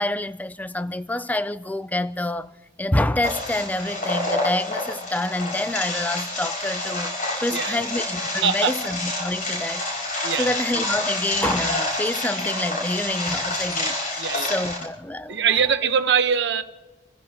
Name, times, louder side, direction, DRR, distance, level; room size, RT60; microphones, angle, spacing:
voice 1, 0.0-2.5 2.8-7.1 7.4-15.4, left 1 dB, 10° left, 0.4 m, -27 dB
sound 1, 3.2-14.8, left 2 dB, 45° left, 5.7 m, -28 dB
voice 2, 7.5-7.8 8.4-8.7 10.2-10.6 14.2-14.5 15.3-16.6, right 7 dB, 60° right, 1.1 m, -22 dB
29.5 x 15.5 x 3.0 m
head